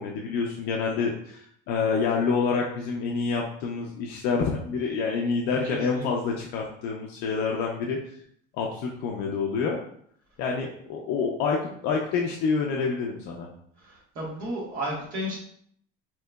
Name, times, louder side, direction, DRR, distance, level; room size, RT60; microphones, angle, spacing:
voice 1, 0.0-8.0 8.5-9.8 10.4-11.6 11.8-13.5, left 5 dB, 55° left, 0 dB, 0.5 m, -27 dB
voice 2, 5.7-6.1 13.8-15.4, equal, 45° right, -4 dB, 1.2 m, -33 dB
3.7 x 2.9 x 2.2 m, 0.65 s
cardioid pair, 170°, 20 cm